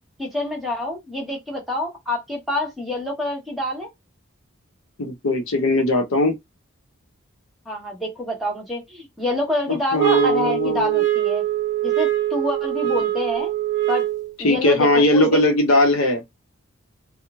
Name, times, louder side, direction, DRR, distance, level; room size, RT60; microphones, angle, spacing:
voice 1, 0.2-3.9 7.7-11.4 11.8-13.5 13.9-14.0 14.4-15.4, left 1 dB, ahead, 0.9 m, -27 dB
voice 2, 5.0-6.4 9.9-11.0 14.4-16.2, left 1 dB, 85° left, 0.7 m, -19 dB
sound 1, 10.0-14.3, right 13 dB, 55° right, 0.6 m, -22 dB
3.0 x 2.0 x 2.3 m
head